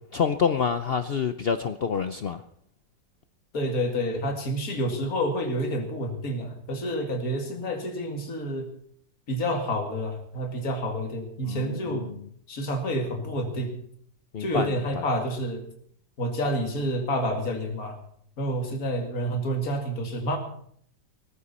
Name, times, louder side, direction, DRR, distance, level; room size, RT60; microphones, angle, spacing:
voice 1, 0.1-2.4 11.4-12.1 14.3-15.0, left 6 dB, 85° left, 10 dB, 0.5 m, -27 dB
voice 2, 3.5-8.7 9.3-12.1 12.5-13.8 14.4-15.6 16.2-18.0 18.4-20.4, equal, 50° left, 4 dB, 2.7 m, -29 dB
19.0 x 15.0 x 4.3 m, 0.64 s
omnidirectional pair, 2.0 m